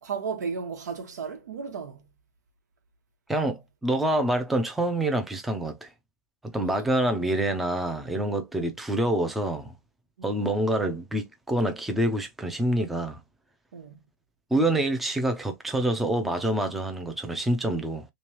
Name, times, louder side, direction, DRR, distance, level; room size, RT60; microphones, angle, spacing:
voice 1, 0.0-2.1 6.6-6.9 8.5-8.6 10.2-10.3 13.7-14.0, right 5 dB, 90° right, 1.3 m, -35 dB
voice 2, 3.3-5.9 6.4-9.7 10.2-13.2 14.5-18.1, right 1 dB, ahead, 0.4 m, -26 dB
3.4 x 3.2 x 2.8 m
supercardioid pair, 170°, 9 cm